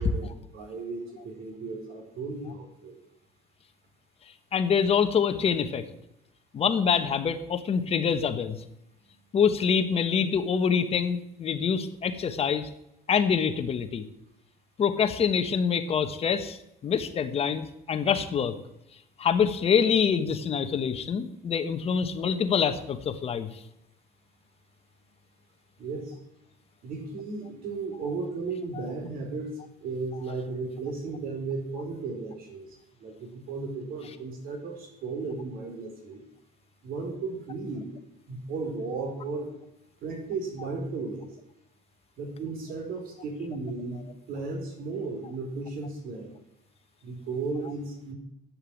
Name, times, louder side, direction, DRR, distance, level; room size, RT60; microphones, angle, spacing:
voice 1, 0.0-3.0 25.8-26.2 26.8-36.2 36.8-37.9 38.3-39.5 40.0-41.3 42.2-46.3 47.0-48.1, right 3 dB, 65° right, 4 dB, 4.4 m, -35 dB
voice 2, 4.5-5.8 6.5-8.6 9.3-12.7 13.1-14.0 14.8-16.6 16.8-18.5 19.2-23.5, left 7 dB, 40° left, 9 dB, 1.2 m, -25 dB
12.5 x 8.8 x 8.6 m, 0.82 s
cardioid pair, 135°, 16 cm